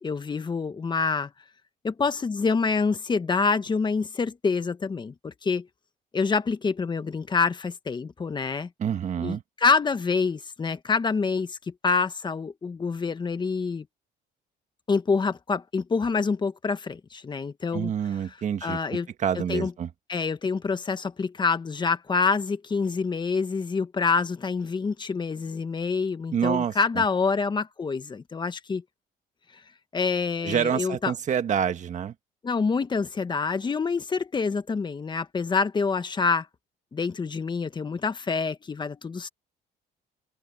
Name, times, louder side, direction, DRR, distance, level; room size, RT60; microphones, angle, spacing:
voice 1, 0.0-1.3 1.8-5.7 6.1-8.7 9.2-13.8 14.9-17.9 18.6-19.1 19.3-19.7 20.1-28.8 29.9-31.1 32.4-36.5 36.9-39.3, left 4 dB, 25° left, 1.3 m, -26 dB
voice 2, 8.8-9.4 17.7-19.9 26.3-27.0 30.4-32.1, right 8 dB, 45° right, 1.5 m, -27 dB
cardioid pair, 110°, 17 cm